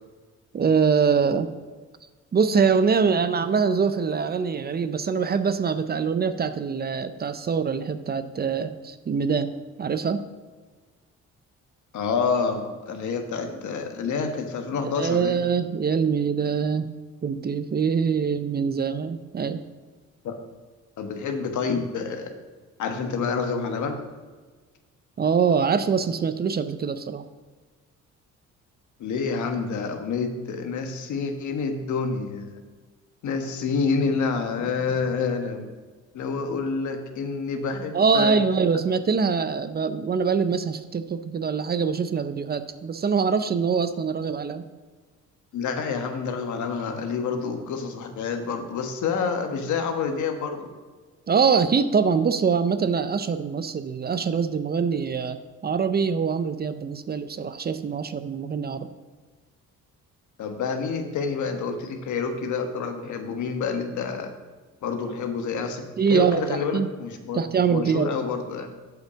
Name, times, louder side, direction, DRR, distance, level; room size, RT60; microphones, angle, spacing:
voice 1, 0.5-1.5 2.3-10.3 15.0-16.9 17.2-19.6 25.2-27.2 37.9-44.7 51.3-58.9 66.0-66.9 67.3-68.1, right 6 dB, 30° right, 12 dB, 0.5 m, -24 dB
voice 2, 11.9-15.4 20.2-20.4 21.0-22.3 22.8-24.0 29.0-32.6 33.2-35.7 36.1-38.4 45.5-50.7 60.4-64.3 64.8-67.4 67.7-68.7, left 5 dB, 75° left, 6 dB, 1.2 m, -28 dB
7.9 x 5.6 x 6.9 m, 1.4 s
cardioid pair, 90°, 30 cm